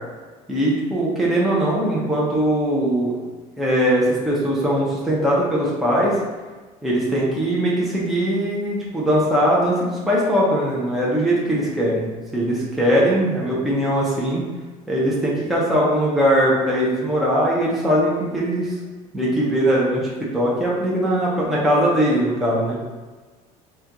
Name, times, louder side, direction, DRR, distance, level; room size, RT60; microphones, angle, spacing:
voice 1, 0.5-3.1 3.6-6.1 6.8-14.4 14.9-18.7 19.1-22.8, equal, ahead, -6 dB, 0.5 m, -20 dB
4.3 x 2.2 x 3.6 m, 1.3 s
cardioid pair, 170°, 15 cm